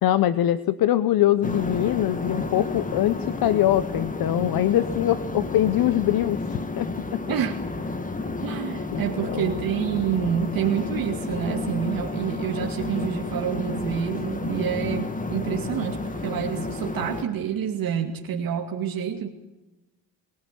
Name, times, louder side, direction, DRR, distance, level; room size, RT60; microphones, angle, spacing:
voice 1, 0.0-7.2 8.9-9.5, left 12 dB, 45° left, 15 dB, 0.9 m, -23 dB
sound 1, 1.4-17.2, left 2 dB, 15° left, 2.0 m, -31 dB
voice 2, 7.3-7.7 8.4-19.3, right 8 dB, 45° right, 2 dB, 2.3 m, -28 dB
23.5 x 17.5 x 8.5 m, 1.0 s
supercardioid pair, 100°, 49 cm